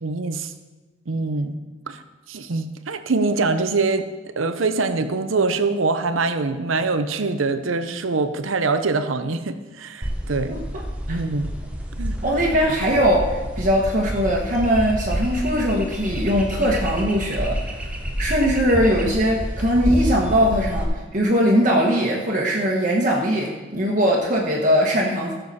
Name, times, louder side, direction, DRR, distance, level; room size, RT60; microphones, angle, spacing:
voice 1, 0.0-0.5 1.1-1.6 1.9-2.0 2.3-4.1 4.4-10.5 11.1-11.5 12.0-12.1, right 3 dB, 90° right, 10 dB, 0.8 m, -24 dB
sound 1, 10.0-20.8, equal, 5° right, 0.9 m, -28 dB
voice 2, 10.5-10.8 11.1-11.2 12.2-17.6 18.2-25.3, equal, 40° right, -2 dB, 1.3 m, -20 dB
15.5 x 6.9 x 4.2 m, 1.2 s
head